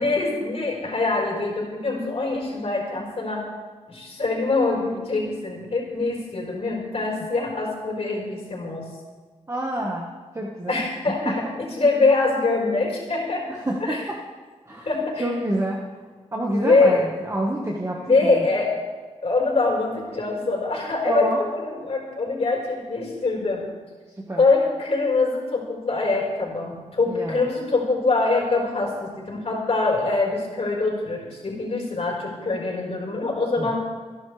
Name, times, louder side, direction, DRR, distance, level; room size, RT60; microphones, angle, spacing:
voice 1, 0.0-3.5 3.9-8.9 10.7-13.5 13.8-14.0 14.8-15.2 16.5-17.0 18.0-18.8 19.2-23.7 24.4-33.8, left 3 dB, 55° left, -2 dB, 4.7 m, -24 dB
voice 2, 9.5-10.8 11.2-11.3 13.5-14.2 14.7-14.9 15.2-15.8 16.3-18.6 21.0-21.4 24.1-24.4 27.1-27.4 33.6-33.8, right 1 dB, 25° right, -2 dB, 1.6 m, -28 dB
26.5 x 11.0 x 3.4 m, 1.4 s
wide cardioid pair, 95°, 13 cm